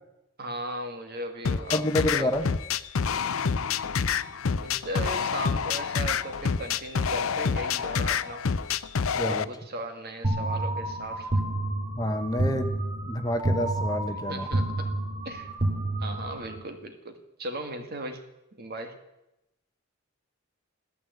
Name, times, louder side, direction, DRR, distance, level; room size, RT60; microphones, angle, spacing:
voice 1, 0.4-2.3 4.6-8.4 9.2-11.3 14.3-14.9 15.2-15.5 16.0-18.2 18.5-18.9, right 1 dB, 50° right, 6 dB, 2.0 m, -37 dB
sound 1, 1.4-9.4, left 6 dB, 70° left, 0.6 m, -27 dB
voice 2, 1.7-2.5 9.2-9.5 11.9-12.8 13.0-14.5, left 1 dB, 20° left, 7 dB, 1.0 m, -28 dB
sound 2, 10.2-16.6, right 1 dB, 25° right, 2.5 m, -29 dB
14.0 x 12.5 x 7.9 m, 0.91 s
head